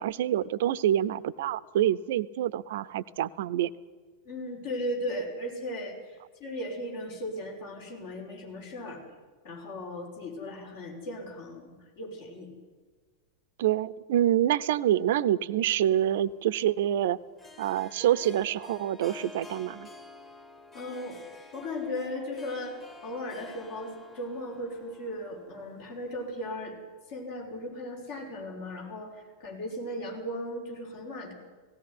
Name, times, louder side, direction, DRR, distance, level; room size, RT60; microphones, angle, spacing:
voice 1, 0.0-3.7 13.6-17.2 17.6-19.9, right 11 dB, 55° right, 17 dB, 0.7 m, -26 dB
voice 2, 4.2-9.0 9.4-12.5 20.7-21.2 21.5-26.7 27.1-31.3, left 1 dB, 50° left, 0 dB, 5.9 m, -37 dB
Harp, 16.0-26.4, left 2 dB, 15° left, 2.0 m, -49 dB
17.5 x 17.0 x 9.9 m, 1.4 s
figure-of-eight pair, 90°, 0 cm